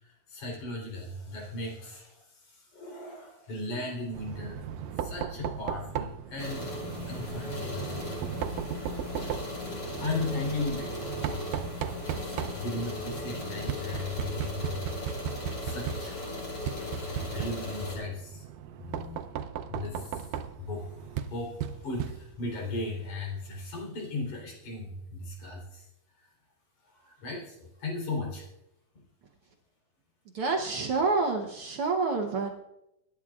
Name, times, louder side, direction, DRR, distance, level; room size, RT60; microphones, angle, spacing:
voice 1, 0.0-4.7 5.0-6.7 7.1-8.0 10.0-10.9 11.3-11.6 12.1-14.8 15.6-16.2 17.0-18.4 18.8-19.3 19.7-20.3 20.6-25.9 26.2-26.3 26.9-28.5, left 2 dB, 65° left, -2 dB, 4.8 m, -37 dB
Knock, 4.1-22.6, right 9 dB, 90° right, 2.3 m, -37 dB
sound 1, 6.4-18.0, left 2 dB, 35° left, 5.4 m, -38 dB
voice 2, 30.3-32.5, right 3 dB, 65° right, 3 dB, 1.4 m, -28 dB
24.5 x 11.0 x 2.4 m, 0.86 s
omnidirectional pair, 3.6 m